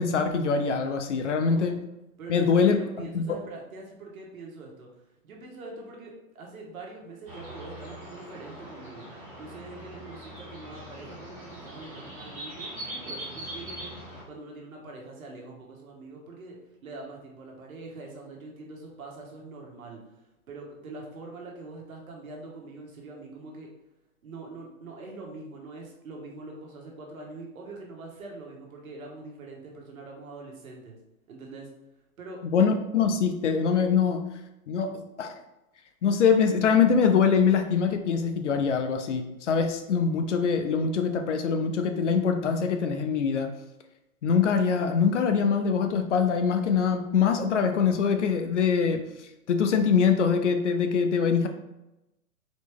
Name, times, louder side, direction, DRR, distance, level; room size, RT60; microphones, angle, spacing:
voice 1, 0.0-1.8 2.3-3.4 32.5-34.2 34.7-35.3 36.0-43.5 44.2-49.0 49.5-51.5, left 6 dB, 55° left, 6 dB, 0.6 m, -23 dB
voice 2, 1.4-1.7 2.2-4.9 5.2-9.0 9.4-13.9 14.3-16.6 16.8-20.0 20.5-23.7 24.2-31.0 31.3-31.7 32.2-32.4, right 3 dB, 70° right, 0 dB, 1.5 m, -43 dB
sound 1, 7.3-14.2, right 1 dB, 10° right, 1.2 m, -41 dB
4.1 x 3.1 x 3.4 m, 0.93 s
hypercardioid pair, 165°, 43 cm